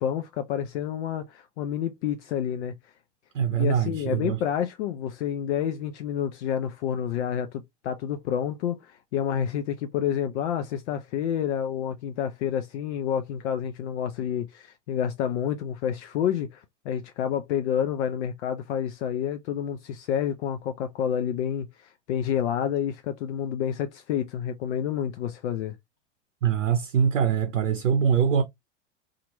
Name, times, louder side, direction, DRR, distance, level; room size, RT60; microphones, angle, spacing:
voice 1, 0.0-2.7 3.5-25.8, left 9 dB, 65° left, 0.6 m, -29 dB
voice 2, 3.3-4.4 26.4-28.4, right 7 dB, 85° right, 0.6 m, -23 dB
2.8 x 2.5 x 2.9 m
hypercardioid pair, 90°, 37 cm